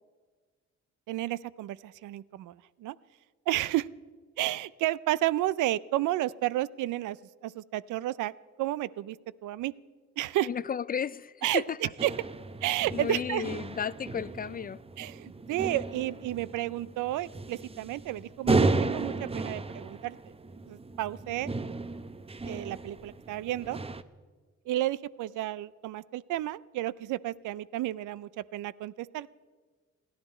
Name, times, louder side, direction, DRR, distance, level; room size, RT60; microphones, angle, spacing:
voice 1, 1.1-3.0 3.5-3.9 4.4-7.2 7.4-8.3 8.6-9.2 9.4-9.7 10.2-10.5 11.4-12.1 12.6-13.4 15.0-20.2 20.7-21.5 22.4-23.8 24.7-29.3, right 15 dB, 80° right, 0.5 m, -31 dB
voice 2, 10.4-11.8 12.9-14.8, left 7 dB, 30° left, 0.4 m, -33 dB
sound 1, 12.0-24.0, right 3 dB, 20° right, 0.7 m, -34 dB
29.0 x 11.5 x 4.3 m
cardioid pair, 90°, 30 cm